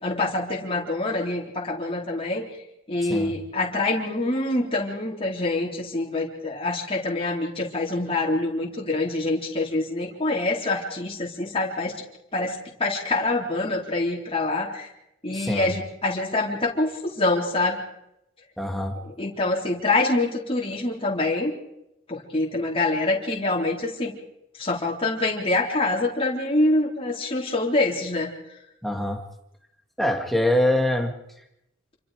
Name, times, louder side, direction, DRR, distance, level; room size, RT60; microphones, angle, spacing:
voice 1, 0.0-2.4 2.9-11.9 12.3-14.9 15.2-17.8 19.0-21.5 22.1-24.1 24.6-28.3, left 2 dB, 25° left, -3 dB, 3.9 m, -25 dB
voice 2, 3.0-3.3 15.3-15.7 18.6-19.0 28.8-29.2 30.0-31.1, left 1 dB, ahead, 3 dB, 2.4 m, -24 dB
28.0 x 25.0 x 5.1 m, 0.84 s
head